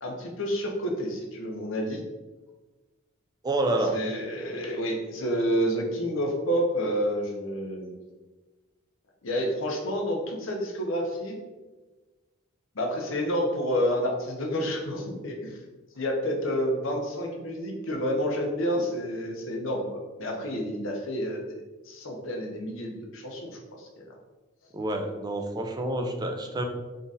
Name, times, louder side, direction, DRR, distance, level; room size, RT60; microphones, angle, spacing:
voice 1, 0.0-2.0 3.9-8.0 9.2-11.4 12.7-15.6 16.0-21.6 21.8-24.1, equal, 75° left, 0 dB, 0.8 m, -29 dB
voice 2, 3.4-4.0 24.7-26.6, right 2 dB, 20° right, 4 dB, 0.4 m, -28 dB
3.9 x 2.4 x 4.0 m, 1.2 s
head